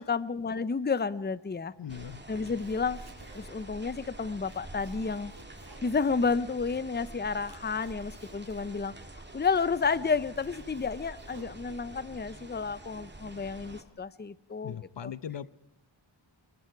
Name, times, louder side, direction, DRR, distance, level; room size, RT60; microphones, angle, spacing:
voice 1, 0.0-1.7 2.3-3.0 3.3-5.3 5.8-8.9 9.3-14.8 15.0-15.1, left 5 dB, 20° left, 17 dB, 0.7 m, -31 dB
voice 2, 1.8-2.2 14.6-15.5, left 8 dB, 65° left, 17 dB, 0.8 m, -39 dB
sound 1, 1.9-13.8, right 2 dB, 20° right, 2.4 m, -47 dB
Domestic sounds home sounds, 2.4-3.8 4.2-6.7 7.1-9.1 9.6-9.7 10.1-12.1, right 2 dB, 50° right, 6.3 m, -57 dB
27.5 x 21.0 x 4.7 m, 0.83 s
wide cardioid pair, 70°, 47 cm